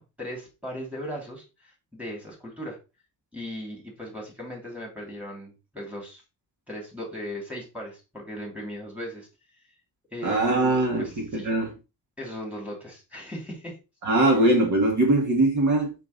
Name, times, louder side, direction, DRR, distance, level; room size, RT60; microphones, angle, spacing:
voice 1, 0.0-2.8 3.3-6.2 6.7-9.3 10.1-11.5 12.2-13.8, equal, 5° right, 2.9 m, -38 dB
voice 2, 10.2-11.7 14.0-15.9, right 2 dB, 55° right, 2.1 m, -21 dB
6.0 x 5.4 x 4.0 m
wide cardioid pair, 170°, 35 cm